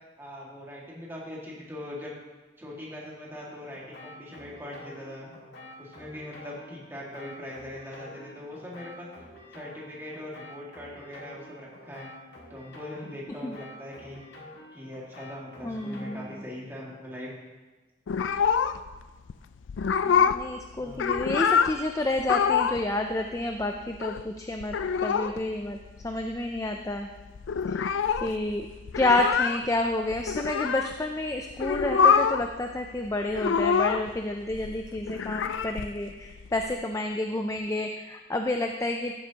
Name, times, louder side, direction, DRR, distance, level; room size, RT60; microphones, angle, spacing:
voice 1, 0.2-2.2 2.6-5.3 5.8-9.1 9.5-12.1 12.5-14.2 14.7-17.3 20.7-21.0, left 1 dB, 10° right, -5 dB, 1.9 m, -41 dB
sound 1, 3.3-16.5, left 1 dB, 65° left, 1.9 m, -48 dB
voice 2, 15.6-16.5 20.0-27.1 27.7-28.7 29.0-39.1, left 2 dB, 15° left, 4 dB, 0.4 m, -30 dB
sound 2, 18.1-19.0 19.3-19.4 19.7-20.5 20.8-21.8 22.2-22.9 23.1-23.2 23.4-24.2 24.6-25.4 25.7-25.8 26.0-26.6 26.9-27.0 27.2-30.9 31.5-32.5 32.8-34.2 34.5-36.7, left 6 dB, 85° left, 0.4 m, -25 dB
14.5 x 7.8 x 2.9 m, 1.2 s
head